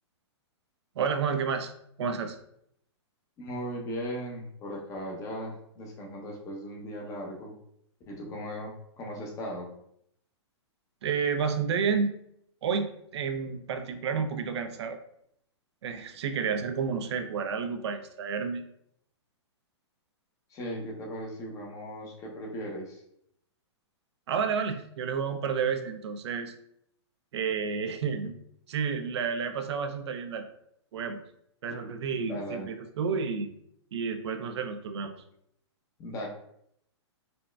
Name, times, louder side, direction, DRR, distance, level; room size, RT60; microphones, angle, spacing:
voice 1, 1.0-1.7 2.0-2.4 11.0-12.1 12.6-15.0 15.8-18.6 24.3-26.5 27.3-28.3 28.7-30.4 30.9-31.2 31.6-33.5 33.9-35.1, right 6 dB, 70° right, 7 dB, 0.4 m, -30 dB
voice 2, 3.4-7.5 8.1-9.7 20.5-23.0 32.1-32.7 36.0-36.3, equal, 20° left, 0 dB, 0.6 m, -38 dB
4.0 x 2.1 x 2.2 m, 0.73 s
hypercardioid pair, 135°, 15 cm